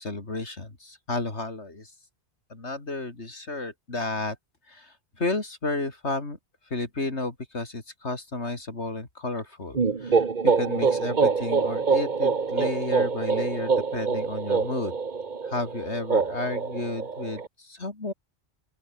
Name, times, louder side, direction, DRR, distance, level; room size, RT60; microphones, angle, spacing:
voice 1, 0.0-1.9 2.5-4.4 4.7-6.4 6.7-14.9 15.4-18.1, left 2 dB, 75° left, 4.0 m, -32 dB
sound 1, 9.7-17.5, right 5 dB, 45° right, 1.3 m, -25 dB
open air
omnidirectional pair, 1.1 m